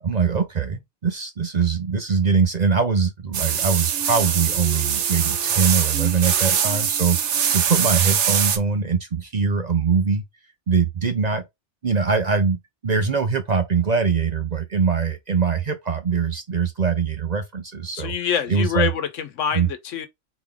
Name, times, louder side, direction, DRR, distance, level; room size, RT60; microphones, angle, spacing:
voice 1, 0.0-10.2 10.7-11.4 11.8-18.1 18.5-18.9 19.5-19.7, right 5 dB, 45° right, 0.6 m, -22 dB
sound 1, 3.3-8.6, right 8 dB, 75° right, 1.1 m, -22 dB
voice 2, 17.9-20.1, left 8 dB, 90° left, 1.1 m, -25 dB
4.0 x 3.4 x 3.6 m
omnidirectional pair, 1.2 m